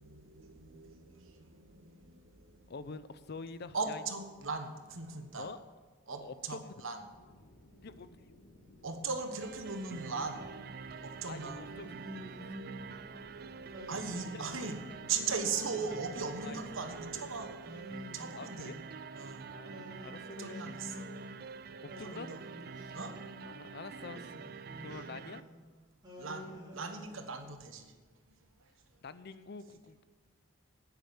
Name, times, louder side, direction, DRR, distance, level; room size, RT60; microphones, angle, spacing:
voice 1, 0.0-2.7 3.7-5.5 6.1-7.0 8.8-10.5 11.0-11.6 13.9-14.8 15.1-17.5 18.1-18.7 19.1-19.5 20.4-21.1 22.0-22.4 22.9-23.2 26.2-27.9 28.3-28.7, right 4 dB, 70° right, 7 dB, 1.2 m, -39 dB
voice 2, 2.7-4.0 5.4-5.6 6.2-6.7 7.8-8.2 11.3-11.9 14.1-14.7 15.9-16.0 16.4-16.6 18.4-18.8 19.5-20.6 21.8-22.3 22.8-23.0 23.4-24.5 24.8-25.4 29.0-30.0, left 4 dB, 50° left, 14 dB, 0.5 m, -46 dB
sound 1, 7.1-17.6, left 1 dB, 85° left, 1.6 m, -58 dB
sound 2, 9.4-25.4, right 5 dB, 45° right, 0.4 m, -47 dB
Singing, 11.6-13.1 13.7-15.0 15.6-17.0 17.6-19.1 19.7-21.5 21.9-23.5 24.0-25.6 26.0-27.6, left 1 dB, 20° right, 3.6 m, -50 dB
9.6 x 8.8 x 7.0 m, 1.4 s
head